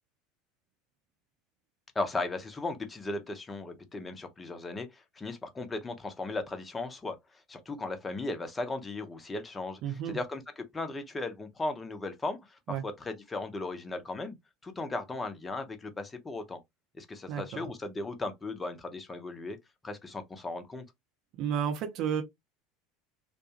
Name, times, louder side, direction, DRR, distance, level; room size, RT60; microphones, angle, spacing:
voice 1, 1.9-7.2 7.5-10.4 10.7-14.3 14.6-16.6 17.0-19.6 19.8-20.8, left 2 dB, 20° left, 0.7 m, -36 dB
voice 2, 9.8-10.2 12.7-12.8 17.3-17.7 21.4-22.2, right 8 dB, 55° right, 0.7 m, -32 dB
2.6 x 2.2 x 2.8 m
hypercardioid pair, 75°, 0 cm